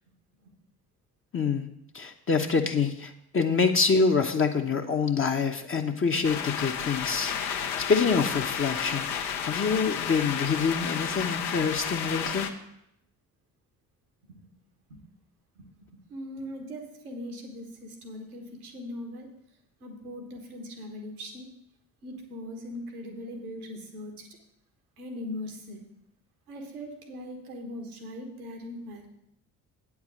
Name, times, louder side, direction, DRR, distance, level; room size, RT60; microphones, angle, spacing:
voice 1, 1.3-1.7 1.9-12.5, left 5 dB, 30° left, 4 dB, 0.8 m, -26 dB
sound 1, 6.2-12.5, left 8 dB, 70° left, 0.9 m, -32 dB
voice 2, 15.9-19.3 19.8-21.5 22.0-24.3 25.0-25.8 26.5-29.0, left 1 dB, 85° right, 3 dB, 1.4 m, -40 dB
8.8 x 4.8 x 7.5 m, 0.78 s
figure-of-eight pair, 45°, 44 cm